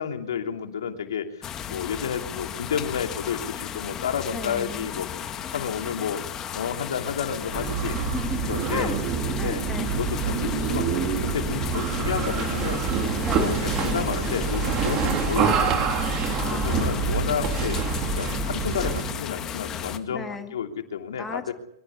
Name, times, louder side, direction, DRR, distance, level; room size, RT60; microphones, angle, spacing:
voice 1, 0.0-5.1 5.5-6.2 6.5-8.0 8.5-8.9 9.3-9.6 10.0-12.8 13.4-15.9 16.5-17.8 18.2-21.5, left 7 dB, 90° left, 4 dB, 2.8 m, -31 dB
sound 1, 1.4-20.0, left 9 dB, 25° left, 1.6 m, -35 dB
voice 2, 4.3-4.9 7.9-8.9 9.4-10.0 13.2-13.6 16.4-17.2 20.1-20.5 21.2-21.5, left 3 dB, 10° left, 5 dB, 2.0 m, -35 dB
sound 2, 7.4-19.2, right 5 dB, 30° right, 3.3 m, -26 dB
23.5 x 13.0 x 9.6 m, 0.74 s
hypercardioid pair, 145°, 2 cm